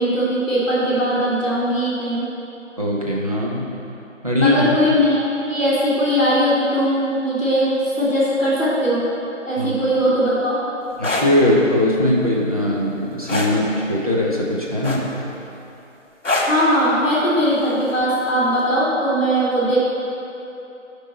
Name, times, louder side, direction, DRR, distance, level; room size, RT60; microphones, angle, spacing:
voice 1, 0.0-2.3 4.4-5.2 5.5-9.0 9.4-10.6 16.4-19.8, equal, ahead, -34 dB, 1.3 m, -19 dB
voice 2, 2.8-3.7 4.2-4.7 9.6-9.8 11.0-15.1, left 1 dB, 30° right, -4 dB, 0.9 m, -20 dB
sound 1, 10.9-11.3 13.3-13.6 14.8-15.3 16.2-16.6 18.0-18.2, left 2 dB, 65° left, 1.5 m, -22 dB
10.0 x 5.4 x 4.2 m, 2.9 s
figure-of-eight pair, 175°, 39 cm